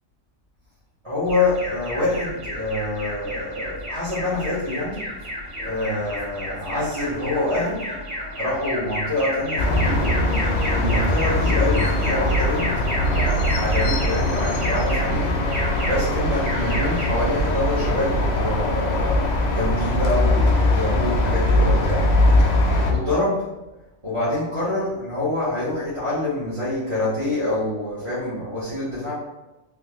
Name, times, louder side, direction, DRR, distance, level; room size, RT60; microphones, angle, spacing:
voice 1, 1.0-5.0 5.6-7.8 8.4-10.2 10.7-15.4 15.8-22.0 22.4-23.5 24.0-29.1, left 2 dB, 30° right, -11 dB, 0.8 m, -26 dB
Alarm, 1.3-18.9, equal, 90° right, 1.9 m, -32 dB
sound 1, 9.6-22.9, left 1 dB, 60° left, 0.4 m, -21 dB
3.5 x 2.4 x 2.9 m, 1.0 s
omnidirectional pair, 1.3 m